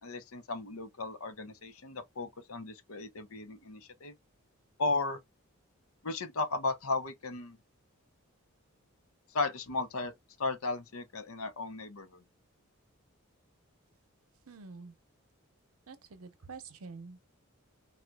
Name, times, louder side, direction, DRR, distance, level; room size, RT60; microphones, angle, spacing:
voice 1, 0.0-4.1 4.8-5.2 6.0-7.6 9.3-10.1 10.4-12.2, left 3 dB, 80° left, 0.8 m, -35 dB
voice 2, 14.5-14.9 15.9-17.2, right 4 dB, 90° right, 0.8 m, -47 dB
4.2 x 2.4 x 2.2 m
head